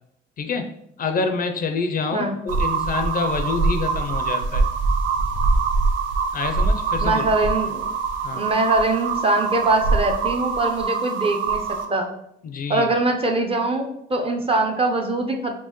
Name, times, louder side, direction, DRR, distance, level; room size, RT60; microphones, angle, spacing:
voice 1, 0.4-0.7 1.0-4.7 6.3-7.3 8.2-8.4 12.4-12.9, left 4 dB, 45° left, 6 dB, 0.4 m, -27 dB
sound 1, 2.5-11.8, right 4 dB, 75° right, 0.5 m, -23 dB
voice 2, 7.0-7.8 8.3-11.6 11.9-12.1 12.7-15.5, right 2 dB, 30° right, 3 dB, 0.6 m, -22 dB
4.4 x 2.1 x 2.9 m, 0.74 s
cardioid pair, 90°, 20 cm